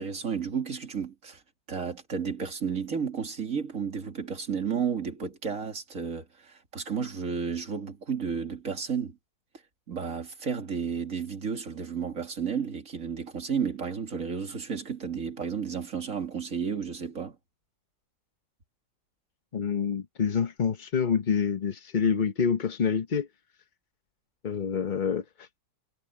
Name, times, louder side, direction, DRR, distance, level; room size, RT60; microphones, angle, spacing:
voice 1, 0.0-1.4 1.7-9.2 9.9-17.4, right 6 dB, 50° right, 2.8 m, -32 dB
voice 2, 19.5-23.3 24.4-25.5, left 6 dB, 40° left, 0.8 m, -27 dB
omnidirectional pair, 1.9 m